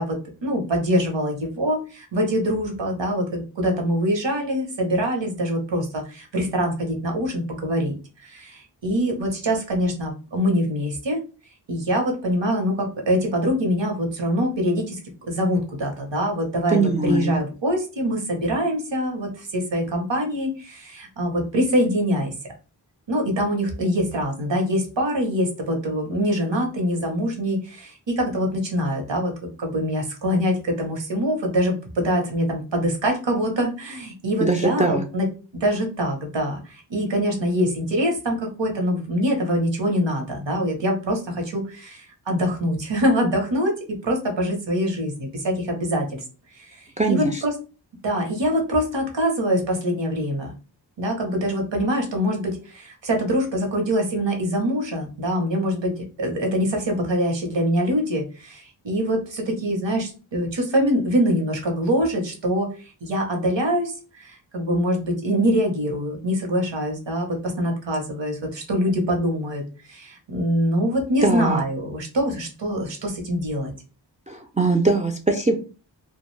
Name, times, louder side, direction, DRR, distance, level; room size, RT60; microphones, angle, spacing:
voice 1, 0.0-7.9 8.2-11.2 11.7-22.3 23.1-29.3 29.6-35.3 35.5-43.7 44.0-46.2 46.6-47.5 48.0-50.5 51.0-62.7 63.0-69.6 69.9-73.7, equal, 75° right, 2 dB, 0.9 m, -24 dB
voice 2, 16.7-17.4 34.4-35.0 47.0-47.4 71.2-71.6 74.3-75.6, right 3 dB, 20° right, 3 dB, 0.3 m, -21 dB
2.4 x 2.2 x 3.1 m, 0.35 s
wide cardioid pair, 45°, 44 cm